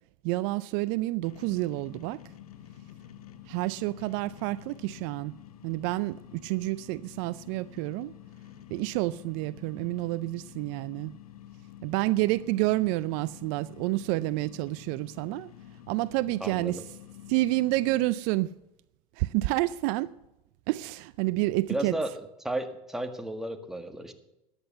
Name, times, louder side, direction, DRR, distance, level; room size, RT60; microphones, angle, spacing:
voice 1, 0.2-2.2 3.5-5.3 5.6-8.1 8.7-11.1 11.8-15.5 15.9-16.8 17.3-18.5 19.2-20.1 20.7-22.0, right 19 dB, 60° right, 0.5 m, -29 dB
sound 1, 1.2-18.1, left 12 dB, 85° left, 1.2 m, -49 dB
voice 2, 16.4-16.8 21.7-24.1, right 1 dB, ahead, 1.7 m, -33 dB
13.5 x 9.9 x 6.7 m
hypercardioid pair, 90°, 18 cm